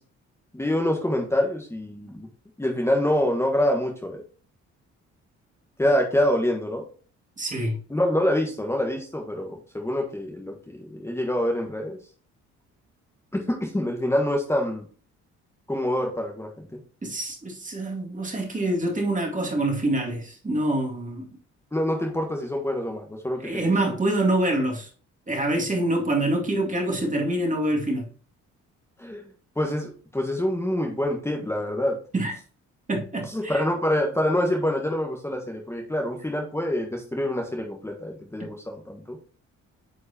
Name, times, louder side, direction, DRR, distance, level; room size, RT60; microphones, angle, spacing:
voice 1, 0.5-2.3 2.6-4.2 5.8-6.8 7.9-12.0 13.5-14.9 15.7-16.8 21.7-24.0 29.0-29.2 29.5-31.9 33.3-39.2, left 1 dB, 10° left, 1.4 m, -26 dB
voice 2, 7.4-7.8 17.0-21.3 23.4-24.9 25.3-28.1 32.1-32.3 32.9-33.6, right 1 dB, 25° right, 2.2 m, -25 dB
9.0 x 4.7 x 2.8 m
cardioid pair, 90°, 30 cm